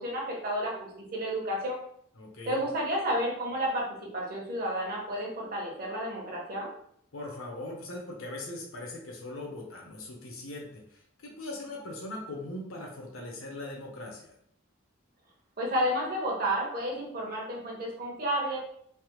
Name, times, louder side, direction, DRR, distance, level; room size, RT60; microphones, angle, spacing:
voice 1, 0.0-1.8 2.5-3.9 4.1-6.7 15.6-18.6, equal, 45° right, -2 dB, 0.8 m, -31 dB
voice 2, 2.1-2.6 7.1-14.4, left 2 dB, 75° left, 0 dB, 0.7 m, -40 dB
3.3 x 2.0 x 2.9 m, 0.68 s
head